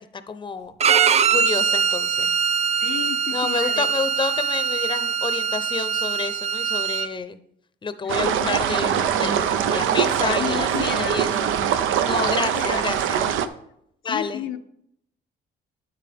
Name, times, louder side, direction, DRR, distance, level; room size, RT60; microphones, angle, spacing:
voice 1, 0.3-2.4 3.3-7.4 7.8-13.2 14.0-14.5, left 5 dB, 25° left, 11 dB, 0.7 m, -30 dB
Bowed string instrument, 0.8-7.1, right 7 dB, 35° right, 0.4 m, -22 dB
voice 2, 2.8-3.9 8.0-8.5 10.2-11.2 12.2-12.8 13.2-13.6 14.1-14.6, left 10 dB, 85° left, 7 dB, 0.7 m, -32 dB
sound 1, 8.1-13.5, right 9 dB, 85° right, 0.6 m, -22 dB
9.0 x 8.5 x 3.5 m, 0.72 s
cardioid pair, 90°, 20 cm